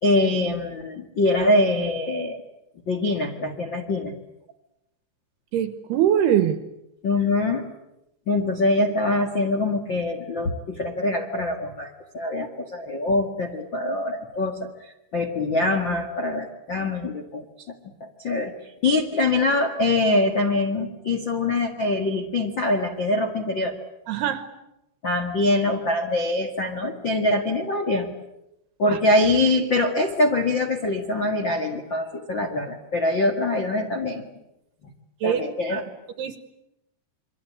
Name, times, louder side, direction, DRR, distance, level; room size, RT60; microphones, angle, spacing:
voice 1, 0.0-2.4 2.9-4.1 7.0-7.7 8.3-17.4 18.0-18.5 18.8-23.8 25.0-28.1 28.8-34.3 35.2-35.8, left 2 dB, 65° left, 2 dB, 1.1 m, -24 dB
voice 2, 5.5-6.6 24.1-24.4 28.9-29.0 35.2-35.4 35.7-35.8 36.2-36.4, right 10 dB, 70° right, 10 dB, 2.6 m, -22 dB
28.0 x 24.0 x 8.7 m, 0.89 s
omnidirectional pair, 5.8 m